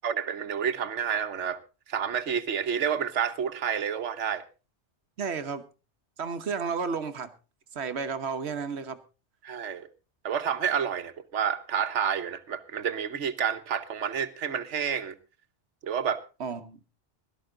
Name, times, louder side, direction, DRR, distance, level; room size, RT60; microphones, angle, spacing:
voice 1, 0.0-1.6 1.9-4.4 9.4-9.9 10.2-15.1 15.8-16.2, right 7 dB, 90° right, 1.3 m, -29 dB
voice 2, 5.2-5.6 6.2-7.3 7.7-9.0 16.4-16.8, right 5 dB, 65° right, 1.3 m, -32 dB
16.5 x 12.5 x 3.8 m
omnidirectional pair, 1.2 m